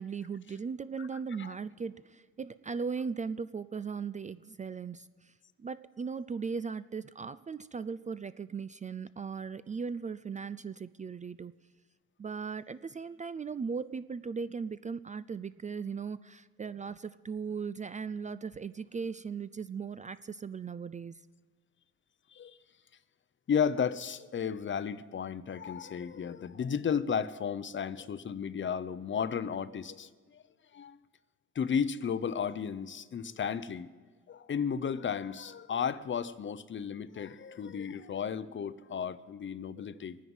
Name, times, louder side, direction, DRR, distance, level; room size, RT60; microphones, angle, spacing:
voice 1, 0.0-5.3 5.6-11.5 12.2-21.2, right 5 dB, 25° right, 16 dB, 0.4 m, -38 dB
voice 2, 23.5-30.4 30.7-31.0 31.5-33.9 34.3-40.2, left 7 dB, 40° left, 16 dB, 0.7 m, -34 dB
23.5 x 9.5 x 5.5 m, 1.5 s
cardioid pair, 90°, 30 cm